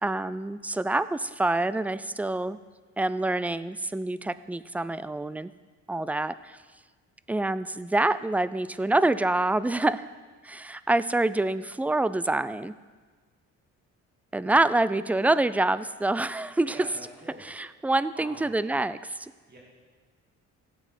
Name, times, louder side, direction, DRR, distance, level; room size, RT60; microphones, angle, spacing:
voice 1, 0.0-2.6 3.0-5.5 5.9-6.6 7.3-10.1 10.4-12.7 14.3-16.9 17.4-19.3, right 2 dB, 5° right, 15 dB, 0.3 m, -26 dB
voice 2, 16.7-17.4 18.1-18.5 19.5-19.6, right 2 dB, 30° right, -4 dB, 2.5 m, -45 dB
17.0 x 7.9 x 4.3 m, 1.4 s
cardioid pair, 90°, 30 cm